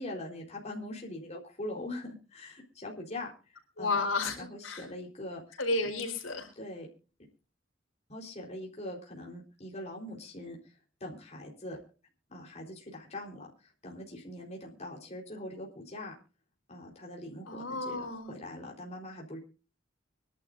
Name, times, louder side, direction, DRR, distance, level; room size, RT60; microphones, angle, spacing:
voice 1, 0.0-3.3 3.8-4.0 4.4-5.4 6.6-6.9 8.1-10.6 11.0-11.8 12.3-13.5 13.8-16.1 16.7-19.4, left 1 dB, 35° left, -1 dB, 4.1 m, -42 dB
voice 2, 3.8-4.8 5.6-6.5 17.5-18.3, left 3 dB, 85° left, 3 dB, 4.4 m, -32 dB
25.0 x 11.5 x 2.6 m, 0.35 s
head